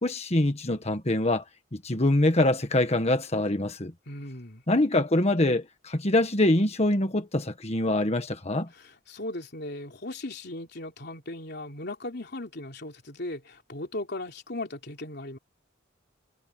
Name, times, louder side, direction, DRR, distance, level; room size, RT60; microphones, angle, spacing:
voice 1, 0.0-1.4 1.7-3.9 4.7-8.7, left 1 dB, 35° left, 1.5 m, -24 dB
voice 2, 4.1-4.6 8.7-15.4, left 2 dB, 60° left, 3.4 m, -37 dB
head